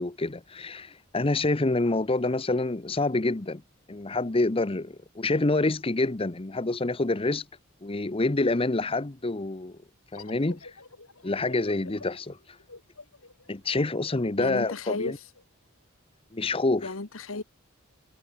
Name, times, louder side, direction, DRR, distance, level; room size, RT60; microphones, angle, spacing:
voice 1, 0.0-3.6 3.9-7.5 7.8-9.8 10.1-10.8 11.2-12.6 13.5-15.2 16.3-16.9, left 2 dB, 25° left, 0.8 m, -27 dB
sound 1, 10.1-15.4, left 3 dB, 90° left, 4.3 m, -49 dB
voice 2, 14.4-15.2 16.8-17.4, left 3 dB, 70° left, 1.6 m, -34 dB
head